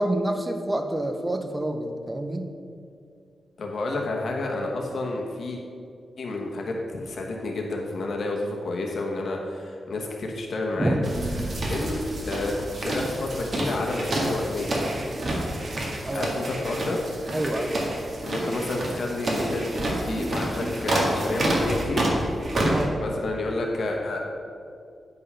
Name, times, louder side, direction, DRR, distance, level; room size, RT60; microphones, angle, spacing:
voice 1, 0.0-2.5 10.8-11.0 16.0-16.3 17.3-17.9 22.7-22.9, right 1 dB, 15° right, 5 dB, 0.7 m, -27 dB
voice 2, 3.6-5.6 6.2-11.0 11.7-14.7 16.1-17.0 18.2-22.1 23.0-24.2, left 2 dB, 65° left, 0 dB, 1.2 m, -30 dB
sound 1, 11.0-22.8, right 1 dB, 45° right, 1.8 m, -28 dB
9.7 x 5.5 x 5.5 m, 2.4 s
wide cardioid pair, 120°, 0 cm